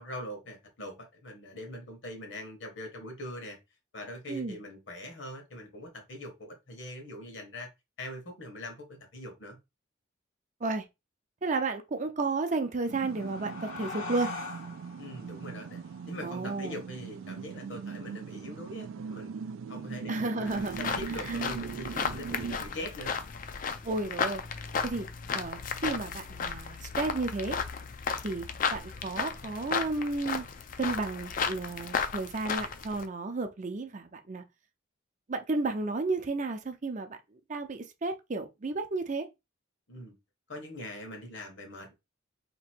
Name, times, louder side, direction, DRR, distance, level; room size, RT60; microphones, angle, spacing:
voice 1, 0.0-3.6 3.9-7.7 8.0-9.6 15.0-15.8 16.1-19.3 19.7-23.1 39.9-40.1 40.5-41.9, left 1 dB, 65° left, 1.3 m, -42 dB
voice 2, 11.4-14.3 16.2-16.8 20.1-20.8 21.3-21.4 23.8-24.4 24.8-25.1 25.3-27.6 28.2-30.4 30.8-34.4 35.3-37.2 37.5-39.3, right 3 dB, 40° right, 0.5 m, -32 dB
sound 1, 12.6-17.8, left 4 dB, 85° left, 1.4 m, -44 dB
sound 2, 12.9-22.6, right 6 dB, 90° right, 0.3 m, -40 dB
sound 3, 20.5-33.0, left 6 dB, 45° left, 0.4 m, -34 dB
2.9 x 2.6 x 4.4 m
head